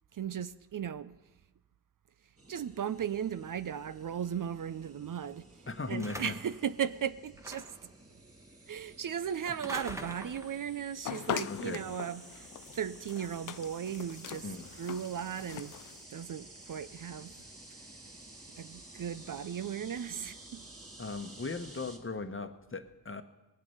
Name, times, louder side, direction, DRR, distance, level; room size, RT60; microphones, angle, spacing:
voice 1, 0.1-1.2 2.5-5.5 5.9-7.7 8.7-14.5 14.8-15.8 16.1-17.3 18.6-20.6, right 8 dB, 50° right, 0.5 m, -36 dB
sound 1, 2.4-22.0, right 2 dB, 35° right, 2.6 m, -53 dB
voice 2, 5.7-6.3 11.5-11.8 14.4-14.7 21.0-23.2, left 3 dB, 30° left, 1.1 m, -38 dB
sound 2, 6.0-6.6 7.4-7.9 9.5-10.6, equal, 5° right, 1.3 m, -43 dB
sound 3, 11.1-16.0, left 11 dB, 50° left, 0.4 m, -41 dB
19.5 x 7.6 x 5.6 m
cardioid pair, 45°, 41 cm